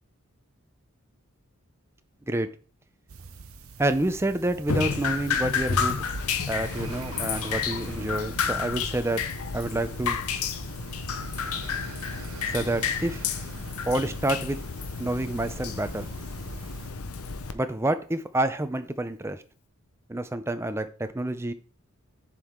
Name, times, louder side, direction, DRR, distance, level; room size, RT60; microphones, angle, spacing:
sound 1, 3.1-16.9, right 4 dB, 75° right, 0.7 m, -44 dB
voice 1, 3.8-6.1 6.5-9.2 9.5-10.2 12.5-13.2 13.8-14.6 15.0-16.1 17.5-19.4 20.1-21.5, right 1 dB, 10° right, 10 dB, 0.5 m, -28 dB
Drip, 4.7-17.5, left 6 dB, 85° left, 0.7 m, -31 dB
7.4 x 5.4 x 3.7 m, 0.38 s
head